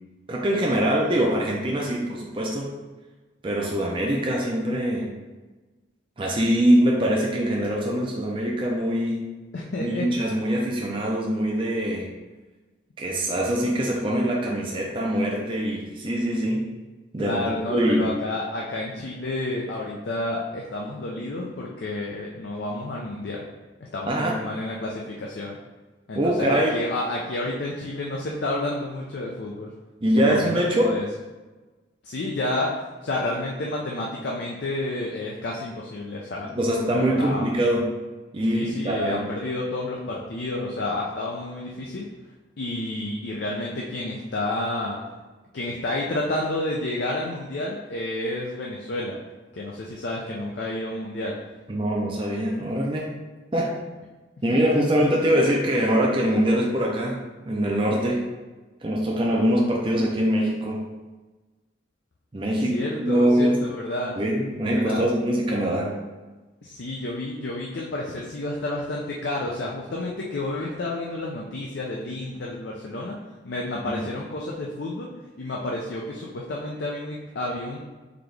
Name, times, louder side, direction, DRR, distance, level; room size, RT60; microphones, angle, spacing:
voice 1, 0.3-2.7 3.4-5.1 6.2-9.3 9.8-12.1 13.0-16.6 17.1-17.4 17.7-18.1 24.0-24.3 26.2-26.7 30.0-30.9 36.6-37.9 38.3-39.2 51.7-53.1 53.5-53.7 54.4-58.3 58.8-60.9 62.3-63.6 64.2-66.0 73.9-74.1, equal, 25° right, -2 dB, 0.5 m, -23 dB
voice 2, 9.5-10.3 17.2-23.4 23.8-25.6 26.1-29.7 30.2-31.1 32.0-36.6 36.9-37.5 38.5-42.1 42.6-45.0 45.5-49.2 49.5-51.4 54.5-54.9 62.7-64.2 64.8-65.0 66.6-73.2 73.4-75.1 75.4-77.8, left 2 dB, 65° left, -3 dB, 0.5 m, -30 dB
3.9 x 2.9 x 3.3 m, 1.2 s
head